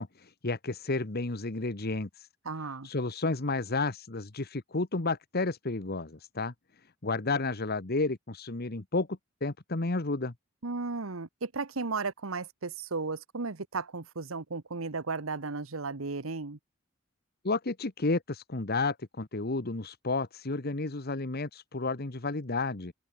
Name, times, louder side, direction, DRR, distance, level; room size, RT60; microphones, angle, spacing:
voice 1, 0.0-2.3 2.8-6.5 7.0-10.3 17.4-22.9, left 3 dB, 50° left, 1.3 m, -31 dB
voice 2, 2.4-2.9 10.6-16.6, right 4 dB, 90° right, 1.3 m, -35 dB
open air
head